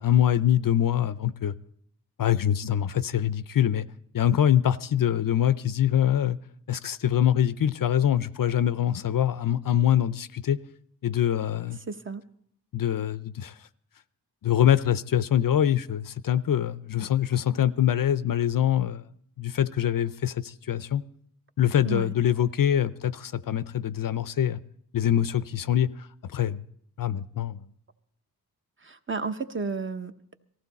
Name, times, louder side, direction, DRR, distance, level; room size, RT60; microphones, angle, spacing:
voice 1, 0.0-1.5 2.2-3.9 4.1-6.4 6.7-10.6 11.0-11.8 12.7-13.5 14.4-19.0 19.4-21.0 21.6-24.6 24.9-26.6 27.0-27.6, left 10 dB, 60° left, 15 dB, 0.5 m, -24 dB
voice 2, 11.9-12.2 21.8-22.1 28.8-30.4, right 4 dB, 30° right, 8 dB, 0.8 m, -32 dB
19.0 x 14.5 x 4.1 m, 0.68 s
cardioid pair, 70°, 39 cm